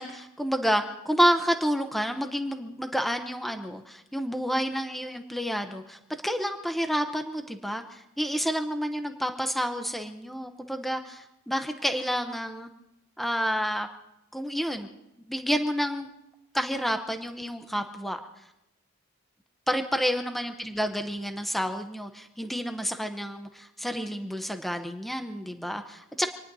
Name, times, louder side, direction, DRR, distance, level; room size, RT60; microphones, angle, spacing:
voice 1, 0.0-12.7 13.2-13.9 14.3-14.9 15.3-16.1 16.5-18.2 19.7-26.3, equal, ahead, 5 dB, 0.7 m, -29 dB
26.5 x 19.5 x 2.7 m, 0.88 s
head